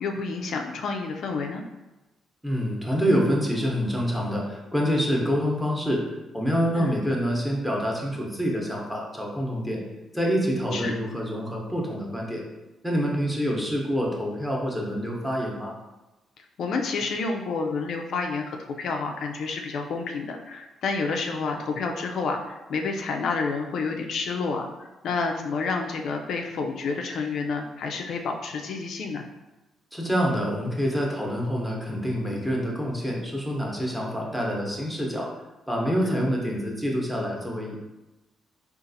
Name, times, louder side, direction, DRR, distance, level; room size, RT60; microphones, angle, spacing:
voice 1, 0.0-1.6 6.8-6.9 10.7-11.0 16.6-29.2 36.0-36.2, left 4 dB, 70° left, 3 dB, 0.3 m, -29 dB
voice 2, 2.4-6.0 6.3-9.8 10.1-12.4 12.8-15.7 29.9-35.3 35.7-37.8, equal, ahead, -2 dB, 0.8 m, -26 dB
3.9 x 2.4 x 2.6 m, 1.0 s
cardioid pair, 90°, 0 cm